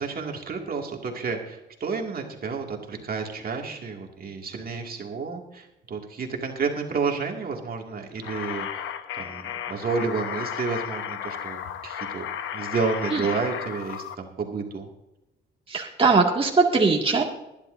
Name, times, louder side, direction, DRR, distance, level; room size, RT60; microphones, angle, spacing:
voice 1, 0.0-12.2 12.5-14.9, right 4 dB, 50° right, 1 dB, 2.2 m, -31 dB
sound 1, 8.2-14.1, left 9 dB, 80° left, 1.0 m, -34 dB
voice 2, 15.7-17.2, right 4 dB, 25° right, -1 dB, 2.0 m, -20 dB
21.0 x 11.0 x 2.6 m, 0.93 s
cardioid pair, 90°, 20 cm